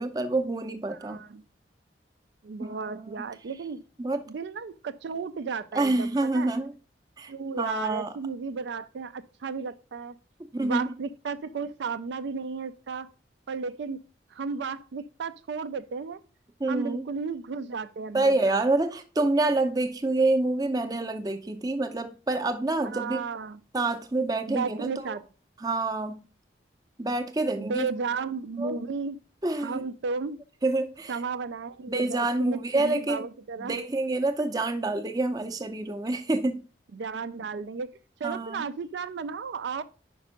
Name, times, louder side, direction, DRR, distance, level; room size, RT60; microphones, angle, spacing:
voice 1, 0.0-1.2 2.6-3.3 4.0-4.2 5.7-6.7 7.2-8.1 10.5-10.9 16.6-17.1 18.1-23.2 23.7-25.1 25.6-26.2 27.0-27.9 28.6-28.8 29.4-29.8 30.6-31.2 31.9-33.3 33.6-36.6 38.2-38.6, right 2 dB, 20° right, 0.5 m, -27 dB
voice 2, 0.9-1.4 2.4-3.8 4.3-6.5 7.3-10.2 10.6-13.1 13.5-14.0 14.3-16.2 16.7-18.6 22.9-23.6 24.5-25.3 27.6-29.2 29.6-30.4 31.1-33.8 36.9-39.8, right 5 dB, 75° right, 0.4 m, -34 dB
5.3 x 5.2 x 5.0 m
head